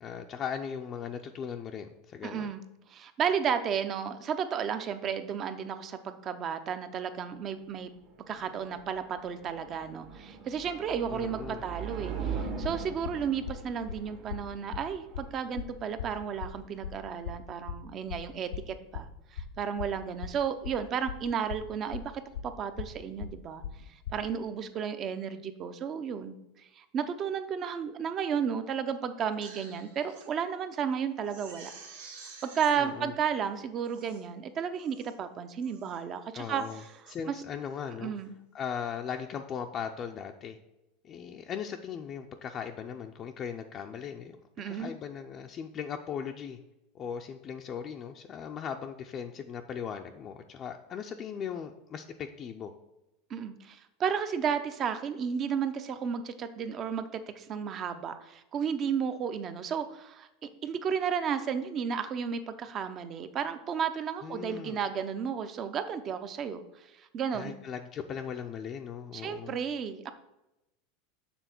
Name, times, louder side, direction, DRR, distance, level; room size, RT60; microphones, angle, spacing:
voice 1, 0.0-2.5 11.1-11.6 32.8-33.1 36.3-36.8 37.1-38.1 38.5-40.6 41.0-44.4 44.7-46.6 46.9-52.7 64.2-64.8 67.3-69.6, left 7 dB, 35° left, 3 dB, 0.5 m, -38 dB
voice 2, 2.2-2.6 2.9-7.9 8.3-23.6 24.1-32.2 32.4-36.6 37.3-37.4 38.0-38.3 44.6-44.9 53.3-67.5 69.1-70.1, right 7 dB, 35° right, 10 dB, 0.6 m, -33 dB
sound 1, 7.7-16.7, right 6 dB, 55° right, 1.5 m, -41 dB
sound 2, 12.6-24.3, left 7 dB, 85° left, 0.6 m, -39 dB
Crying sobbing, 29.2-30.3 30.7-30.8 31.2-32.8 33.4-33.5 33.8-34.3 34.8-35.2 35.6-36.0 36.4-37.2 37.6-37.9, right 4 dB, 85° right, 1.7 m, -50 dB
6.9 x 3.7 x 5.9 m, 0.94 s
supercardioid pair, 125°, 0 cm